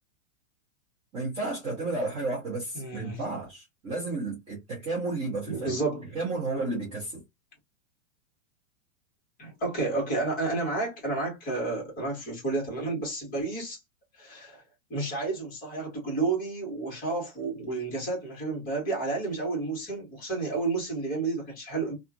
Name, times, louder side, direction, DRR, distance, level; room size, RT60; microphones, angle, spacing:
voice 1, 1.1-5.8 6.1-7.2, right 2 dB, 15° right, 0.6 m, -32 dB
voice 2, 2.7-3.2 5.5-6.0 9.4-13.8 14.2-14.6 14.9-22.0, right 3 dB, 20° left, 1.5 m, -31 dB
2.8 x 2.4 x 2.4 m
supercardioid pair, 160°, 41 cm